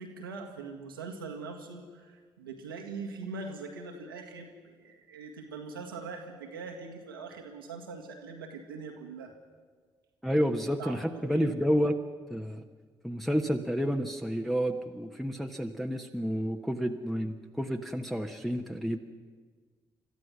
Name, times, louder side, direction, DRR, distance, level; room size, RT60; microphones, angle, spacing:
voice 1, 0.0-9.3 10.8-11.5, right 4 dB, 80° right, 2 dB, 1.8 m, -42 dB
voice 2, 10.2-12.0 12.3-12.6 13.0-19.0, equal, ahead, 2 dB, 1.3 m, -30 dB
30.0 x 14.0 x 6.2 m, 1.5 s
figure-of-eight pair, 40°, 12 cm